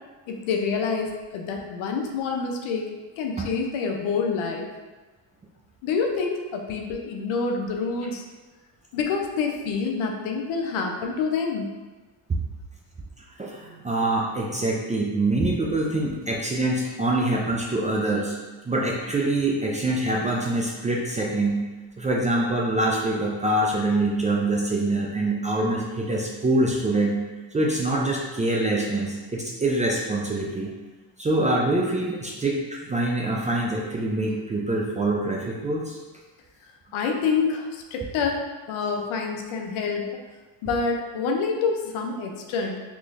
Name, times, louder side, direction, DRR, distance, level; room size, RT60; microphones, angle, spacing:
voice 1, 0.3-2.9 3.2-4.7 5.8-8.2 8.9-11.7 36.9-40.1 40.6-42.8, left 5 dB, 80° left, 2 dB, 0.7 m, -27 dB
voice 2, 13.4-18.4 18.7-21.6 22.0-27.2 27.5-30.7 31.2-36.0, right 2 dB, 15° right, -2 dB, 0.3 m, -25 dB
3.7 x 3.0 x 2.5 m, 1.2 s
cardioid pair, 95°, 47 cm